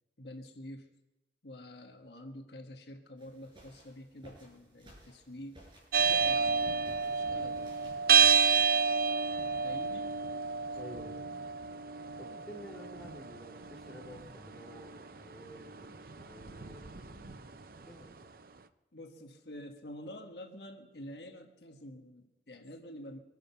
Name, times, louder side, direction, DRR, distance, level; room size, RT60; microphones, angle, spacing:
voice 1, 0.2-0.9 1.4-5.6 6.1-8.0 9.6-10.2 18.9-23.2, left 1 dB, 70° left, 4 dB, 1.5 m, -48 dB
sound 1, 3.2-8.4, right 1 dB, 25° right, 6.4 m, -58 dB
sound 2, 5.9-18.0, right 6 dB, 55° right, 0.7 m, -30 dB
voice 2, 10.7-11.2 12.2-17.4 17.9-18.2, equal, 5° left, -3 dB, 3.3 m, -50 dB
24.5 x 10.5 x 5.7 m, 1.0 s
head